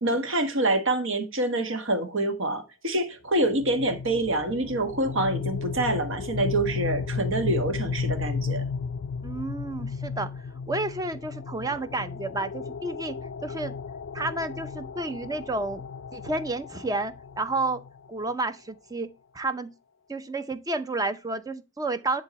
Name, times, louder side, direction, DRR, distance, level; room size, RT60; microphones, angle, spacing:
voice 1, 0.0-8.6, right 2 dB, 65° right, 1.4 m, -26 dB
sound 1, 3.4-18.3, left 5 dB, 60° left, 0.4 m, -34 dB
voice 2, 9.2-10.3 10.7-13.2 13.4-13.8 14.1-15.8 16.1-17.8 18.1-19.1 19.3-19.7 20.1-22.2, right 2 dB, 20° right, 0.6 m, -30 dB
10.0 x 3.8 x 4.1 m
head